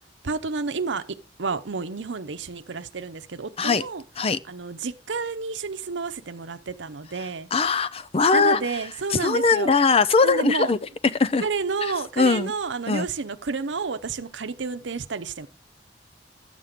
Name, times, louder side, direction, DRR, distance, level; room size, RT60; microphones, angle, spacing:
voice 1, 0.2-4.0 4.5-7.5 8.3-9.7 10.2-10.7 11.4-15.5, right 4 dB, 85° right, 0.8 m, -30 dB
voice 2, 7.5-8.6 9.1-10.8 11.2-11.4 11.8-12.5 12.9-13.1, left 4 dB, 35° left, 0.5 m, -21 dB
12.0 x 7.5 x 5.0 m
head